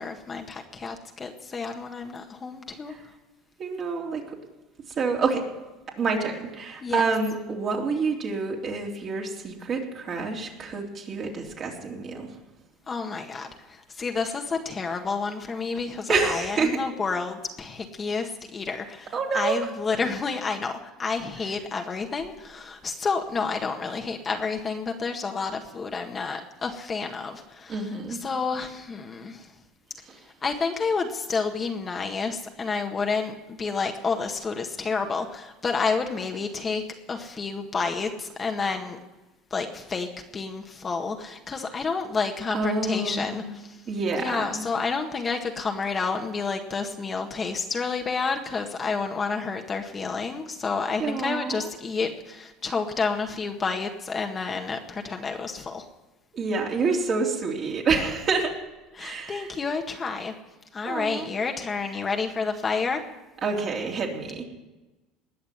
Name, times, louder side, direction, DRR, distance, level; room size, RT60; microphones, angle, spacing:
voice 1, 0.0-2.9 6.8-7.0 12.9-29.5 30.4-36.8 37.1-39.0 39.5-40.1 40.3-43.8 44.2-55.9 58.9-60.3 60.7-63.0, left 4 dB, 30° left, 3 dB, 1.7 m, -30 dB
voice 2, 3.6-4.2 5.0-5.4 6.0-12.3 16.1-16.8 19.1-19.6 27.7-28.2 42.5-43.5 43.9-44.6 51.0-51.7 56.3-58.5 59.0-59.5 60.8-61.3 63.4-64.4, right 4 dB, 40° right, 0 dB, 3.5 m, -27 dB
20.0 x 6.7 x 9.5 m, 1.1 s
supercardioid pair, 95°, 0 cm